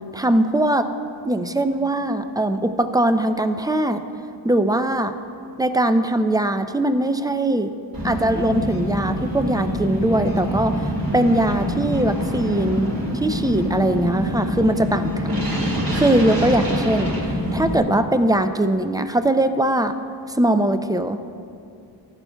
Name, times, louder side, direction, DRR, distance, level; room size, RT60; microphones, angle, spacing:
voice 1, 0.1-0.9 1.2-4.0 4.4-5.1 5.6-7.7 8.0-10.7 11.1-15.5 15.9-17.2 17.5-19.9 20.4-21.2, right 1 dB, 10° right, 8 dB, 0.4 m, -21 dB
sound 1, 7.9-17.8, equal, 45° right, 2.1 m, -25 dB
14.0 x 10.5 x 2.2 m, 2.5 s
wide cardioid pair, 60°, 47 cm